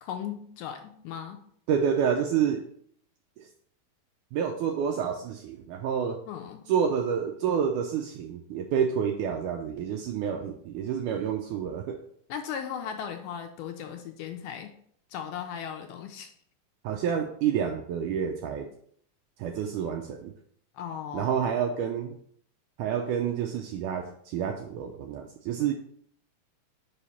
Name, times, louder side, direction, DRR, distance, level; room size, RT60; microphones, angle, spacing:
voice 1, 0.0-1.4 6.3-6.7 12.3-14.7 15.1-16.3 20.7-21.3, left 8 dB, 80° left, 5 dB, 2.0 m, -37 dB
voice 2, 1.7-2.6 3.4-3.5 4.3-6.2 6.7-12.0 16.8-18.7 19.4-20.3 21.1-22.2 22.8-25.7, right 8 dB, 85° right, 4 dB, 1.8 m, -28 dB
5.6 x 5.0 x 4.2 m, 0.63 s
omnidirectional pair, 4.1 m